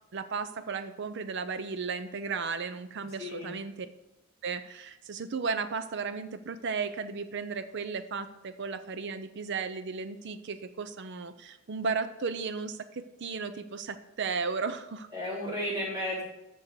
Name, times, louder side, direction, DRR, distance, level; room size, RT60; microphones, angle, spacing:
voice 1, 0.1-3.9 4.4-15.1, right 5 dB, 50° right, 11 dB, 0.5 m, -35 dB
voice 2, 3.0-3.5 15.1-16.2, left 1 dB, 15° right, -7 dB, 3.3 m, -34 dB
7.2 x 6.3 x 6.6 m, 0.93 s
head